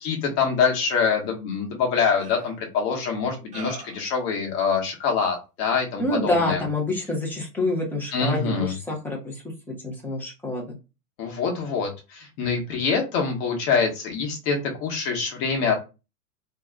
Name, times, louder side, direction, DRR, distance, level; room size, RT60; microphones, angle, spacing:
voice 1, 0.0-6.6 8.1-8.7 11.2-15.8, left 5 dB, 40° left, 2 dB, 1.1 m, -25 dB
sound 1, 1.2-1.3 2.2-2.6 3.5-4.0, right 3 dB, 15° right, 1.0 m, -40 dB
voice 2, 6.0-9.4 9.8-10.7, left 2 dB, 5° left, -1 dB, 0.7 m, -27 dB
2.3 x 2.2 x 3.7 m, 0.28 s
hypercardioid pair, 110°, 48 cm